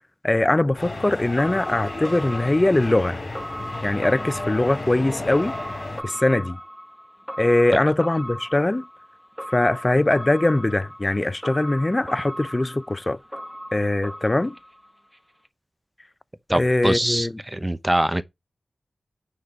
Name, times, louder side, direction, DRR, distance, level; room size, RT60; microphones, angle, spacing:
voice 1, 0.2-3.2 3.8-5.6 6.0-6.6 7.4-8.9 9.5-13.2 13.7-14.6 16.5-17.3, left 2 dB, 30° left, 0.4 m, -21 dB
sound 1, 0.8-6.0, left 2 dB, 50° left, 3.8 m, -33 dB
sound 2, 1.0-15.2 15.4-15.5, equal, ahead, 1.2 m, -37 dB
voice 2, 16.5-18.2, right 1 dB, 20° right, 0.8 m, -23 dB
9.4 x 3.8 x 5.3 m
cardioid pair, 50°, 0 cm